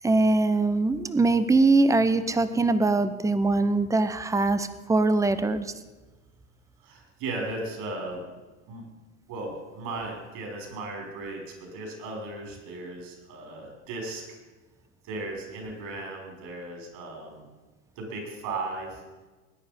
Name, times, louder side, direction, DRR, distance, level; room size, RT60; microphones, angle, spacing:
voice 1, 0.0-5.7, right 3 dB, 5° right, 12 dB, 0.8 m, -22 dB
voice 2, 6.8-8.3 8.7-8.9 9.3-14.4 15.0-17.5 18.0-19.0, right 2 dB, 55° right, 1 dB, 5.9 m, -36 dB
19.5 x 9.9 x 5.4 m, 1.2 s
hypercardioid pair, 100°, 44 cm